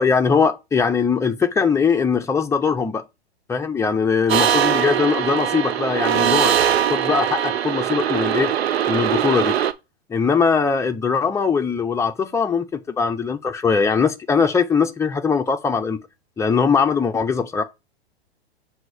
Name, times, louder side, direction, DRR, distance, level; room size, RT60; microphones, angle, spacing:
voice 1, 0.0-3.0 3.5-6.6 6.9-8.5 8.9-9.6 10.1-16.0 16.4-17.6, left 5 dB, 10° left, 0.6 m, -21 dB
sound 1, 4.3-9.7, right 9 dB, 70° right, 0.7 m, -21 dB
7.5 x 2.8 x 5.0 m
figure-of-eight pair, 105°, 32 cm